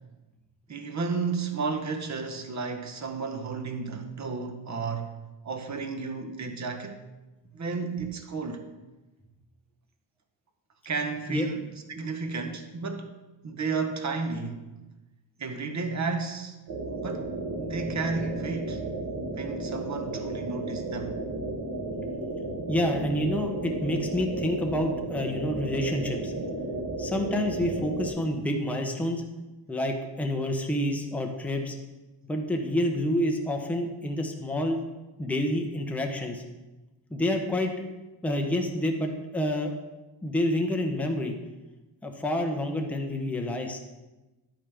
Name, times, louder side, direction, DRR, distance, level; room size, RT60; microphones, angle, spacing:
voice 1, 0.7-5.1 5.4-7.0 7.5-8.6 10.8-13.1 13.4-14.6 15.4-16.6 16.9-18.8 19.4-21.2, right 4 dB, 35° right, 0.9 m, -32 dB
sound 1, 16.7-28.1, right 2 dB, 60° right, 1.6 m, -33 dB
voice 2, 22.7-26.3 27.0-29.2 29.7-31.8 32.3-34.8 35.2-36.4 37.1-37.7 38.2-39.7 40.2-41.3 42.0-43.8, left 1 dB, 5° left, 0.7 m, -28 dB
10.0 x 8.8 x 3.4 m
wide cardioid pair, 165°, 46 cm